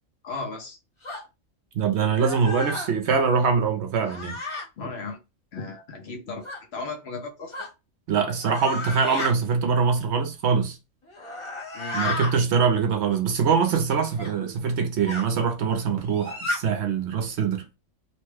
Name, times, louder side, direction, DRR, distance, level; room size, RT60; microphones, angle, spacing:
voice 1, 0.2-0.8 4.8-5.2 5.5-6.5 6.7-7.5 11.7-12.0, left 3 dB, 60° left, 0.9 m, -35 dB
sound 1, 1.0-1.2 2.1-2.9 4.0-4.7 6.4-6.6 7.5-7.7 8.4-9.3 11.1-12.3 14.2-14.3 15.1-15.3 16.1-16.6, left 2 dB, 25° left, 0.9 m, -32 dB
voice 2, 1.7-4.4 8.1-10.8 11.9-17.6, right 6 dB, 65° right, 0.8 m, -23 dB
3.0 x 2.2 x 3.1 m
omnidirectional pair, 1.3 m